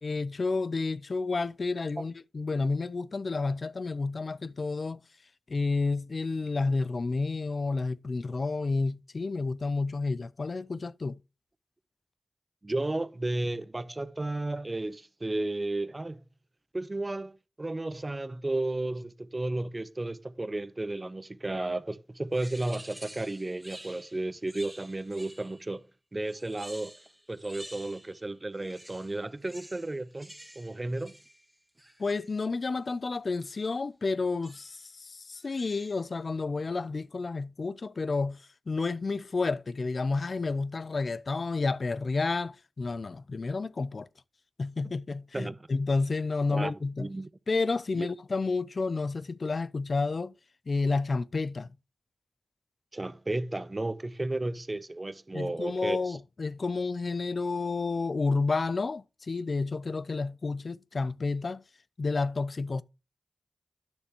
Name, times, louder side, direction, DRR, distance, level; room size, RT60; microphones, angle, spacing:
voice 1, 0.0-5.0 5.5-11.2 32.0-44.1 44.6-47.1 47.5-50.3 50.7-51.7 55.3-61.6 62.0-62.8, left 3 dB, 65° left, 0.4 m, -30 dB
voice 2, 12.6-16.2 16.7-25.8 26.1-26.9 27.3-31.1 44.8-44.9 45.3-45.6 46.5-47.3 47.9-48.1 52.9-56.2, right 2 dB, 35° right, 0.7 m, -33 dB
sound 1, 22.3-25.7 26.3-28.3 28.5-32.4 33.4-33.8 34.4-34.9 35.3-36.1, right 1 dB, 5° right, 2.0 m, -50 dB
9.9 x 6.6 x 2.9 m
cardioid pair, 40°, 0 cm